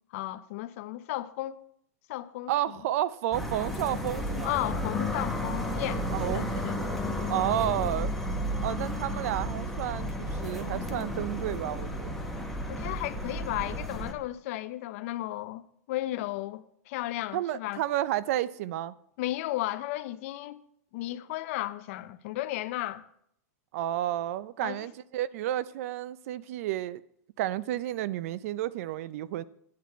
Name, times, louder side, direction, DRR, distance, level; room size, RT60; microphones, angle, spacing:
voice 1, 0.1-1.6 2.1-2.5 4.4-6.8 12.7-15.6 15.9-17.8 19.2-20.6 20.9-23.0 24.6-24.9, left 15 dB, 60° left, 0.7 m, -34 dB
voice 2, 2.5-4.5 6.1-6.5 7.3-8.1 8.6-12.1 17.3-18.9 23.7-27.0 27.4-29.4, right 13 dB, 65° right, 0.5 m, -31 dB
sound 1, 3.3-14.1, left 1 dB, ahead, 1.4 m, -32 dB
11.0 x 8.6 x 4.5 m
supercardioid pair, 135°, 8 cm